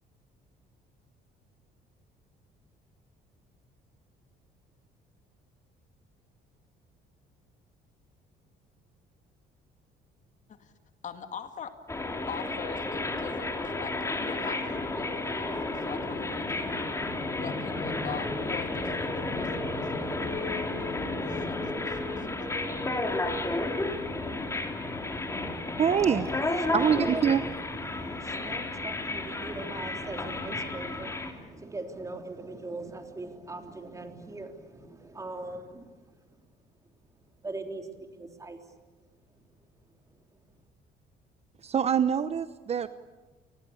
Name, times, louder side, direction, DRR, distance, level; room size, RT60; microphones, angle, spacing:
voice 1, 11.0-11.7 12.3-16.9 17.4-23.5, left 7 dB, 45° left, 8 dB, 2.4 m, -43 dB
sound 1, 11.9-31.3, left 2 dB, 15° left, 3.2 m, -32 dB
voice 2, 25.8-26.3 26.7-27.5 41.6-42.9, right 8 dB, 40° right, 13 dB, 0.8 m, -25 dB
voice 3, 26.6-27.2 27.9-35.9 37.4-37.9 38.2-38.6, right 2 dB, 20° right, 5 dB, 3.4 m, -40 dB
29.0 x 20.0 x 8.6 m, 1.4 s
cardioid pair, 110°, 17 cm